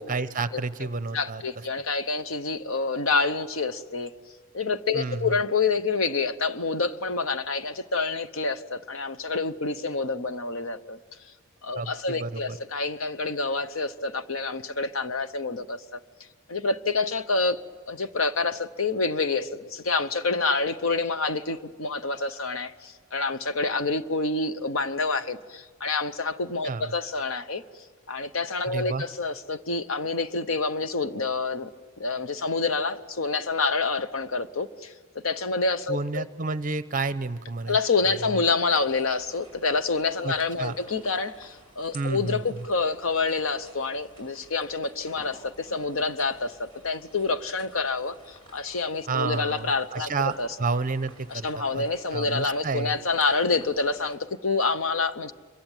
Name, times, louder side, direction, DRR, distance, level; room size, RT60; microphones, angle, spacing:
voice 1, 0.0-1.6 4.9-5.4 11.8-12.6 26.6-26.9 28.7-29.0 35.9-37.8 40.2-40.8 41.9-42.6 49.1-51.9 52.1-52.9, right 3 dB, 40° right, 0.8 m, -30 dB
voice 2, 1.1-4.1 4.5-11.0 11.6-16.0 16.5-27.6 28.1-31.7 32.0-34.9 35.2-36.2 37.7-50.1 50.4-50.5 51.3-55.3, left 4 dB, 65° left, 0.9 m, -27 dB
sound 1, 38.6-54.2, right 1 dB, 25° left, 5.2 m, -53 dB
26.5 x 23.0 x 9.0 m
head